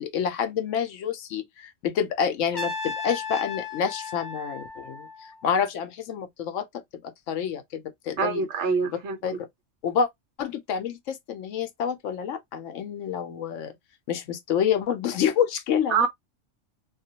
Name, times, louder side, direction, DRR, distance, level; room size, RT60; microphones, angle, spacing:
voice 1, 0.0-8.4 9.2-9.4 9.8-10.1 10.4-13.7 14.1-16.1, left 7 dB, 75° left, 0.9 m, -28 dB
Trumpet, 2.5-5.5, left 4 dB, 35° left, 0.4 m, -35 dB
voice 2, 8.2-9.2 15.9-16.1, right 5 dB, 65° right, 1.0 m, -24 dB
2.4 x 2.2 x 2.7 m
omnidirectional pair, 1.3 m